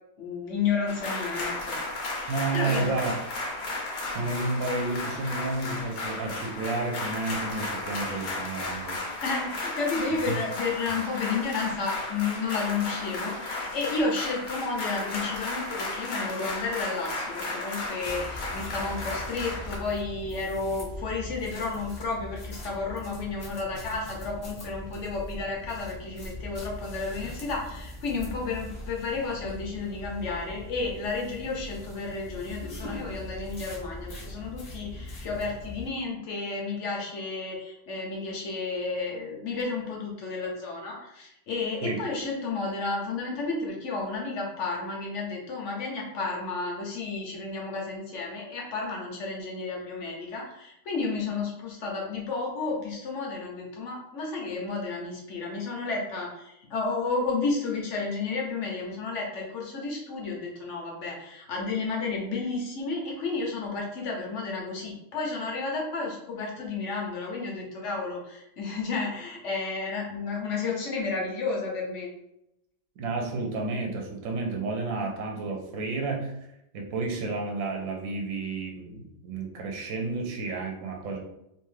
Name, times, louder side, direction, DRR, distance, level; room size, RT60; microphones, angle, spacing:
voice 1, 0.2-1.8 2.5-3.0 9.2-72.1, left 4 dB, 65° left, -1 dB, 0.9 m, -32 dB
sound 1, 0.9-19.8, left 2 dB, 80° left, 1.2 m, -34 dB
voice 2, 2.3-3.3 4.1-9.0 10.3-10.4 41.8-42.0 73.0-76.3 76.7-81.2, right 3 dB, 70° right, 1 dB, 0.9 m, -31 dB
sound 2, 18.0-35.9, left 1 dB, 40° left, 0.7 m, -41 dB
2.8 x 2.3 x 3.2 m, 0.83 s
omnidirectional pair, 1.5 m